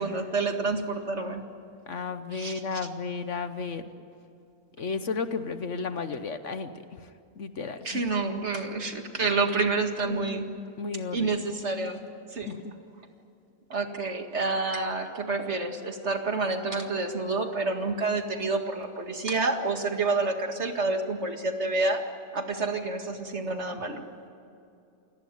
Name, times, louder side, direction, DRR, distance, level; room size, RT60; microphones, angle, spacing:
voice 1, 0.0-1.4 2.3-2.6 7.8-10.6 11.1-12.0 12.3-12.5 13.7-22.0 22.3-24.0, right 3 dB, 45° right, 5 dB, 2.2 m, -28 dB
voice 2, 1.9-3.9 4.8-7.1 7.4-8.0 9.2-9.3 10.0-10.4 10.8-11.3 12.4-12.6, left 4 dB, 55° left, 10 dB, 1.2 m, -33 dB
29.0 x 18.5 x 9.1 m, 2.6 s
omnidirectional pair, 1.6 m